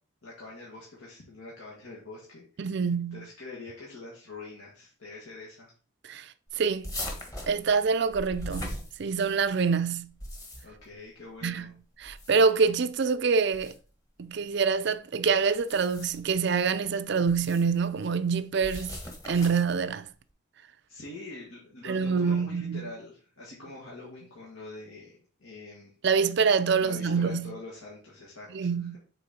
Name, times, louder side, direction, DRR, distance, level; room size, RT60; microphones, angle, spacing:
voice 1, 0.2-2.8 3.1-5.7 10.6-11.7 20.9-25.9 26.8-29.0, left 2 dB, 80° left, 2.0 m, -45 dB
voice 2, 2.6-3.2 6.1-6.9 7.5-10.1 11.4-11.7 12.0-13.7 14.2-19.0 19.3-20.0 21.8-22.9 26.0-27.5 28.5-29.0, right 5 dB, 50° right, 0.4 m, -26 dB
sound 1, 6.8-9.5 10.0-10.9 12.0-12.7 13.5-13.8 15.6-16.3 17.3-17.8 18.6-19.8, left 1 dB, 15° left, 1.2 m, -39 dB
6.8 x 4.1 x 4.2 m
head